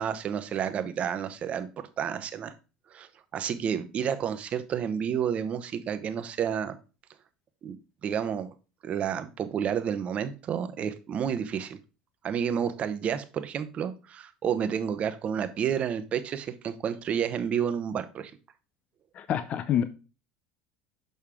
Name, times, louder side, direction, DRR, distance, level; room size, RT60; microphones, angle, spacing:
voice 1, 0.0-1.7 2.0-2.5 2.9-6.8 7.6-7.8 8.0-8.5 8.8-11.8 12.2-18.3, right 8 dB, 40° right, 10 dB, 0.9 m, -30 dB
voice 2, 19.1-19.8, left 9 dB, 45° left, 12 dB, 0.5 m, -27 dB
6.7 x 5.4 x 3.6 m, 0.32 s
supercardioid pair, 95°, 3 cm